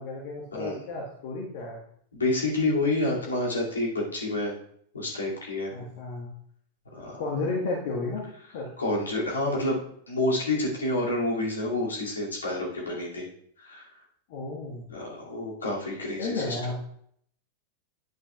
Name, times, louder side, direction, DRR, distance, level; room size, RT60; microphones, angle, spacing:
voice 1, 0.0-1.8 5.7-6.3 7.2-8.2 8.5-8.7 14.3-14.8 16.2-16.8, left 3 dB, 50° left, -1 dB, 1.5 m, -32 dB
voice 2, 2.1-4.5 4.9-5.7 6.9-7.2 8.8-9.8 10.1-13.3 13.6-13.9 14.9-16.6, left 2 dB, 75° left, -4 dB, 2.5 m, -28 dB
11.0 x 8.4 x 2.4 m, 0.65 s
figure-of-eight pair, 90°, 0 cm